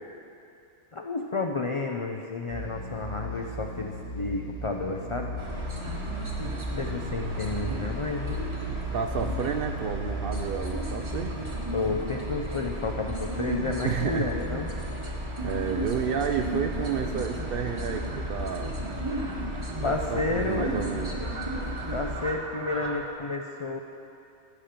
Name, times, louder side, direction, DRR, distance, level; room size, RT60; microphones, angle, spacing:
voice 1, 0.9-5.3 6.8-8.3 11.7-14.7 19.8-20.7 21.2-21.3 21.9-23.8, left 3 dB, 60° left, 2 dB, 0.3 m, -31 dB
sound 1, 2.5-10.5, equal, 40° left, 2.0 m, -37 dB
sound 2, 5.4-22.3, right 1 dB, 25° right, 1.1 m, -33 dB
voice 2, 8.9-11.3 13.8-14.3 15.1-18.7 19.9-21.1, right 7 dB, 60° right, 6 dB, 0.6 m, -31 dB
Fowl, 14.5-23.1, right 3 dB, 80° right, 1.3 m, -43 dB
14.5 x 5.1 x 5.8 m, 2.6 s
omnidirectional pair, 1.3 m